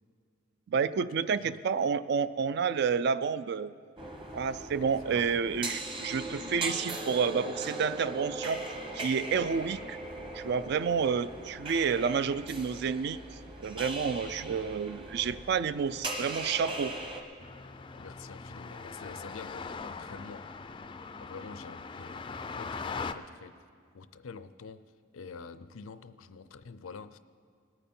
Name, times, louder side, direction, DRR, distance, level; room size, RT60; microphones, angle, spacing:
voice 1, 0.7-3.7 4.3-8.6 8.9-10.0 10.3-13.2 13.6-16.9, right 6 dB, 55° right, 15 dB, 0.3 m, -29 dB
voice 2, 1.3-1.6 4.8-5.3 18.0-20.7 21.2-22.3 22.6-23.6 23.9-27.2, left 5 dB, 90° left, 13 dB, 0.5 m, -47 dB
sound 1, 4.0-17.2, right 2 dB, 25° right, 1.1 m, -39 dB
sound 2, 17.4-23.1, left 4 dB, 25° left, 0.3 m, -41 dB
20.0 x 9.0 x 4.4 m, 2.1 s
head